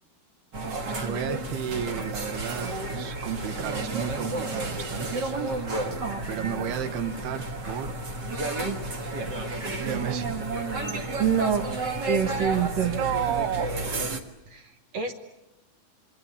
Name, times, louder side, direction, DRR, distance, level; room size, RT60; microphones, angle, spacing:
sound 1, 0.5-14.2, right 2 dB, 50° right, 1.3 m, -31 dB
voice 1, 0.8-5.6 6.3-7.9 9.8-10.4 12.2-12.3 12.8-13.7, right 9 dB, 85° right, 10 dB, 3.3 m, -32 dB
voice 2, 11.2-11.7 12.1-13.0 14.5-15.1, right 7 dB, 70° right, 7 dB, 1.7 m, -26 dB
27.0 x 23.0 x 8.7 m, 0.90 s
omnidirectional pair, 4.5 m